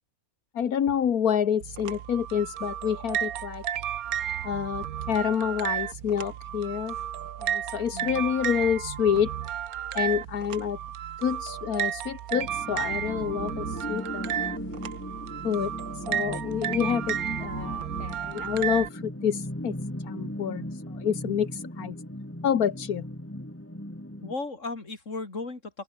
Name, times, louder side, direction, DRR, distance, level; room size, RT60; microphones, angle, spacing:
voice 1, 0.5-3.6 4.4-6.9 7.4-9.3 9.9-10.8 11.2-14.6 15.4-19.7 20.0-21.9 22.4-23.0, left 8 dB, 85° left, 1.7 m, -28 dB
sound 1, 1.6-18.9, right 10 dB, 80° right, 1.4 m, -33 dB
voice 2, 7.9-8.2 24.2-25.8, left 3 dB, 55° left, 4.0 m, -35 dB
sound 2, 12.3-24.3, left 1 dB, 10° left, 3.4 m, -37 dB
open air
omnidirectional pair, 1.5 m